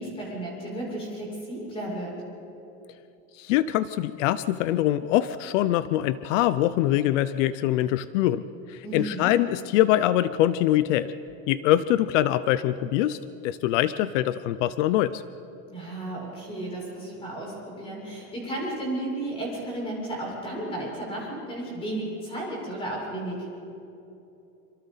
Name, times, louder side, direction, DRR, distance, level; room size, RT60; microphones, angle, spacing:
voice 1, 0.0-2.1 8.8-9.3 15.7-23.5, right 1 dB, 15° left, -4 dB, 6.8 m, -33 dB
voice 2, 3.3-8.4 8.7-11.1 11.5-15.2, left 13 dB, 75° left, 15 dB, 0.7 m, -23 dB
27.5 x 25.5 x 4.1 m, 3.0 s
cardioid pair, 180°, 37 cm